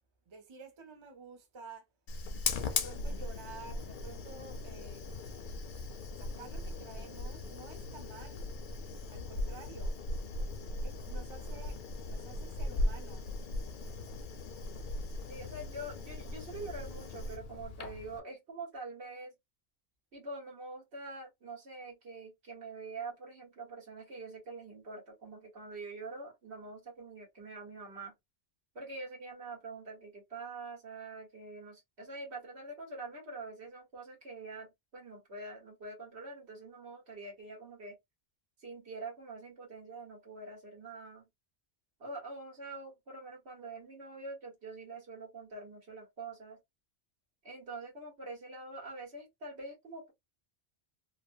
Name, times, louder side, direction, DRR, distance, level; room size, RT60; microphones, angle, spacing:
voice 1, 0.3-1.9 2.4-5.1 6.2-8.5 9.1-10.0 10.8-11.8 12.1-13.3, right 4 dB, 35° right, 0.6 m, -51 dB
Fire, 2.1-18.2, left 2 dB, 60° left, 0.6 m, -38 dB
voice 2, 15.3-19.3 20.1-28.1 28.7-38.0 38.6-41.3 42.0-46.6 47.4-50.1, right 3 dB, 75° right, 1.6 m, -45 dB
3.0 x 2.1 x 2.5 m
omnidirectional pair, 1.1 m